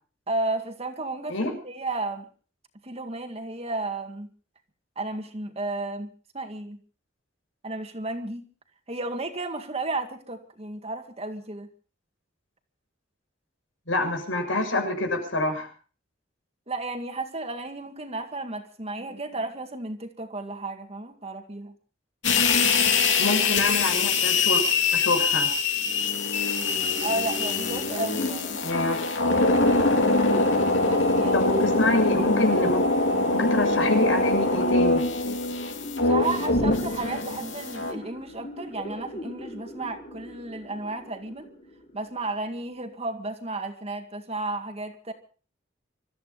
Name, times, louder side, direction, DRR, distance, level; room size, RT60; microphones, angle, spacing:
voice 1, 0.3-2.3 2.8-4.3 5.0-6.8 7.6-8.5 8.9-11.7 16.7-21.7 27.0-28.6 30.8-31.5 36.0-41.5 41.9-45.1, right 2 dB, 35° right, 2.0 m, -33 dB
voice 2, 13.9-15.7 23.2-24.6 24.9-25.5 28.6-29.0 31.3-32.9 33.2-35.0, left 2 dB, 85° left, 6.8 m, -26 dB
sound 1, 22.2-37.9, left 3 dB, 70° left, 2.8 m, -23 dB
sound 2, 26.8-42.8, left 1 dB, 40° left, 5.0 m, -40 dB
25.5 x 14.0 x 4.1 m
head